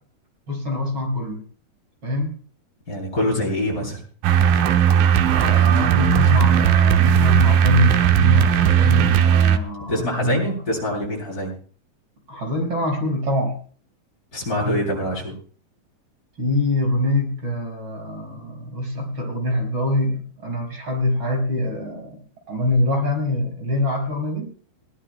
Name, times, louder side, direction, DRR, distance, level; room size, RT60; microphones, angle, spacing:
voice 1, 0.5-1.4 2.0-2.3 5.3-10.5 12.3-13.6 16.4-22.2 22.5-24.5, left 1 dB, 35° right, 2 dB, 5.7 m, -24 dB
voice 2, 2.9-4.0 9.9-11.5 14.3-15.3, left 1 dB, 25° left, -2 dB, 8.5 m, -24 dB
sound 1, 4.2-9.6, right 9 dB, 90° right, 2.7 m, -16 dB
22.0 x 17.5 x 2.2 m, 0.44 s
omnidirectional pair, 3.9 m